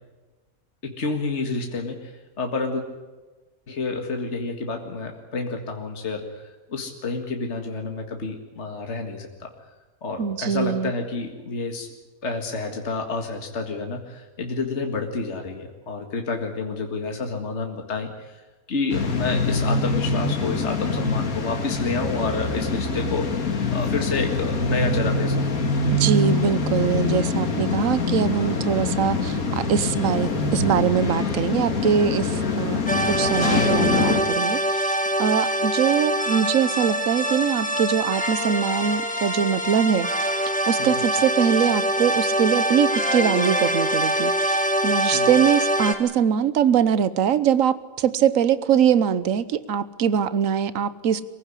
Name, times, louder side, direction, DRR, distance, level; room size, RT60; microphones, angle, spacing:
voice 1, 0.8-2.8 3.7-9.5 10.0-11.9 12.2-25.4 40.8-41.0 45.1-45.3, left 3 dB, 50° left, 3 dB, 2.2 m, -29 dB
voice 2, 10.2-10.9 25.9-32.8 33.1-34.9 35.2-40.3 40.7-51.2, right 8 dB, 65° right, 15 dB, 1.3 m, -22 dB
sound 1, 18.9-34.2, left 3 dB, 75° left, 2.5 m, -24 dB
sound 2, 32.9-45.9, right 1 dB, 5° left, 1.8 m, -24 dB
23.5 x 15.5 x 10.0 m, 1.2 s
omnidirectional pair, 1.5 m